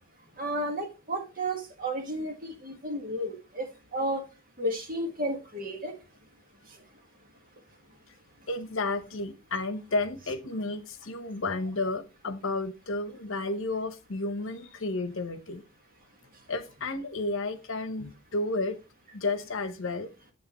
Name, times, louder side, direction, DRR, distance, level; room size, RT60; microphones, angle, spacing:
voice 1, 0.4-3.7 3.9-4.2 4.6-5.9, right 1 dB, 40° right, 1.6 m, -32 dB
voice 2, 8.5-15.6 16.5-18.8 19.1-20.1, left 2 dB, 70° left, 0.9 m, -32 dB
7.6 x 6.4 x 3.0 m
head